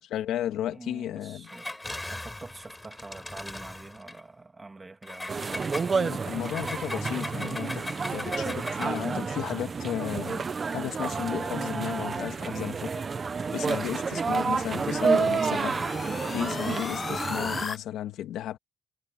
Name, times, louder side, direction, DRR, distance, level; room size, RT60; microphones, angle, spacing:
voice 1, 0.0-1.5 5.9-12.9 13.5-15.8 16.3-18.6, left 11 dB, 85° left, 2.1 m, -34 dB
voice 2, 0.7-1.8 2.1-5.7 12.4-12.8, right 3 dB, 20° right, 3.0 m, -45 dB
Engine, 1.4-4.2 5.0-9.1, left 2 dB, 10° left, 5.7 m, -39 dB
sound 1, 5.3-17.7, right 5 dB, 40° right, 1.3 m, -30 dB
sound 2, 14.0-17.8, left 5 dB, 35° left, 0.5 m, -37 dB
cardioid pair, 90°, 0 cm